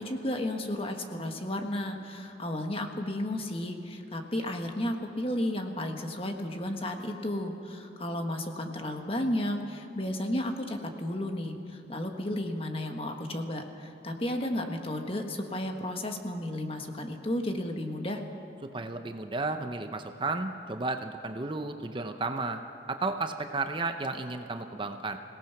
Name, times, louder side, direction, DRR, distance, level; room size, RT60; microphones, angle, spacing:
voice 1, 0.0-18.2, left 1 dB, 30° left, 4 dB, 1.4 m, -33 dB
voice 2, 18.7-22.6 22.9-25.2, right 3 dB, 25° right, 7 dB, 0.7 m, -33 dB
25.5 x 17.5 x 5.9 m, 2.9 s
head